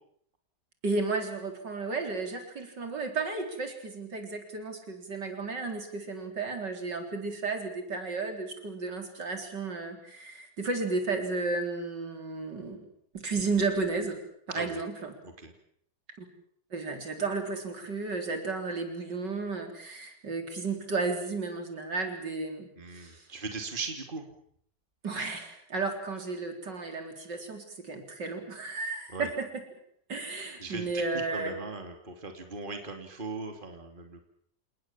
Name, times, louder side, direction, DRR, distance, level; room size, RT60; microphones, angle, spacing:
voice 1, 0.8-12.9 13.1-14.2 14.5-15.1 16.2-16.3 16.7-22.7 22.9-23.3 25.0-29.6 30.1-31.5, right 3 dB, 65° right, 5 dB, 4.5 m, -33 dB
voice 2, 14.5-14.8 15.2-15.5 22.8-24.3 29.1-29.3 30.6-34.3, right 3 dB, 25° right, 5 dB, 3.0 m, -39 dB
28.5 x 19.5 x 7.4 m, 0.65 s
omnidirectional pair, 2.0 m